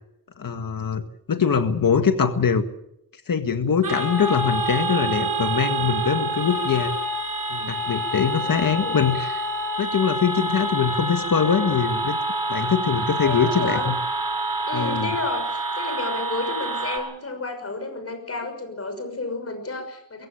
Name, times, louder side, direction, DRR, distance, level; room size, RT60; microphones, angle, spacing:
voice 1, 0.4-2.7 3.3-7.0 7.5-9.4 9.8-12.2 12.5-13.9 14.7-15.1, left 6 dB, 65° left, 8 dB, 1.8 m, -23 dB
sound 1, 3.8-17.0, right 1 dB, 60° right, 6.5 m, -27 dB
voice 2, 8.2-9.0 13.1-13.9 14.7-20.3, left 3 dB, 40° left, 6 dB, 6.1 m, -32 dB
23.0 x 15.5 x 8.6 m, 0.78 s
wide cardioid pair, 150°, 36 cm